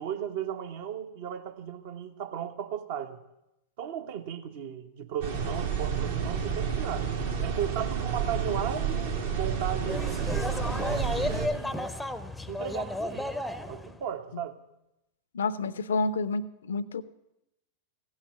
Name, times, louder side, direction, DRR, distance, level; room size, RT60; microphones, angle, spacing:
voice 1, 0.0-3.2 3.8-7.1 7.4-11.9 12.5-13.3 13.7-14.6, right 9 dB, 50° right, 8 dB, 1.1 m, -36 dB
sound 1, 5.2-11.5, right 7 dB, 70° right, 2.5 m, -30 dB
sound 2, 9.9-14.0, left 1 dB, 5° left, 0.7 m, -33 dB
voice 2, 15.3-17.0, left 3 dB, 65° left, 18 dB, 0.5 m, -29 dB
16.0 x 8.9 x 8.1 m, 0.90 s
figure-of-eight pair, 90°, 0 cm